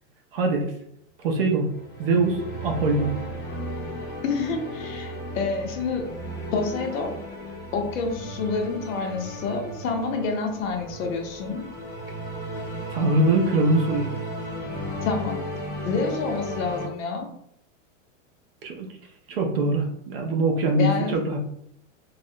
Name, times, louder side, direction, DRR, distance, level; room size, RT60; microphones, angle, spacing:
voice 1, 0.3-0.6 1.2-1.7 2.0-3.1 12.9-14.1 18.6-18.9 19.3-21.4, right 2 dB, 50° right, 2 dB, 0.4 m, -23 dB
sound 1, 1.5-16.9, equal, 35° left, 0.5 m, -35 dB
voice 2, 4.2-6.1 6.5-7.2 7.7-11.7 15.0-15.5 15.8-17.3 20.8-21.2, left 4 dB, 80° left, 3 dB, 0.7 m, -28 dB
2.3 x 2.0 x 2.6 m, 0.71 s
supercardioid pair, 180°, 39 cm